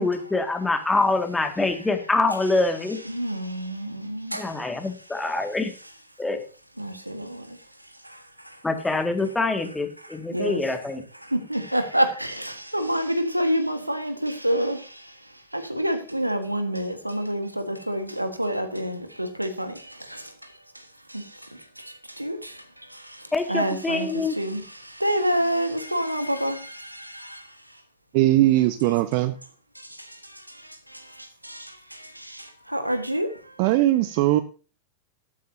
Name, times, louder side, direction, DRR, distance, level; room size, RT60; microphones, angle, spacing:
voice 1, 0.0-3.0 4.3-5.7 6.2-6.4 8.6-11.0 23.3-24.4, left 3 dB, 10° left, 2.0 m, -25 dB
voice 2, 2.9-5.3 5.8-5.9 6.8-8.6 10.0-10.6 11.1-27.8 29.7-33.7, equal, 90° right, 1.5 m, -29 dB
voice 3, 28.1-29.3 33.6-34.4, right 16 dB, 45° right, 0.7 m, -20 dB
13.0 x 12.5 x 2.8 m
figure-of-eight pair, 90°, 0 cm